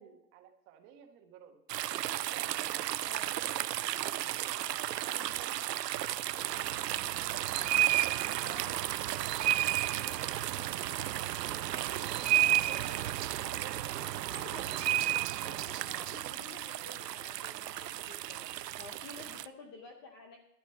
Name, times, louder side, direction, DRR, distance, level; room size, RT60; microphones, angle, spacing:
voice 1, 0.0-1.6 2.0-5.6 6.0-6.7 10.9-11.0 11.4-14.9 15.7-16.0 18.9-19.2, right 8 dB, 25° right, 5 dB, 1.2 m, -54 dB
sound 1, 1.7-19.5, right 13 dB, 85° right, 0.7 m, -33 dB
voice 2, 3.0-3.3 8.4-8.8 9.8-10.8 12.2-12.7 14.3-15.0 15.3-18.4 18.8-20.4, left 3 dB, 15° left, 3 dB, 0.6 m, -51 dB
12.0 x 9.5 x 4.5 m, 0.84 s
hypercardioid pair, 155°, 47 cm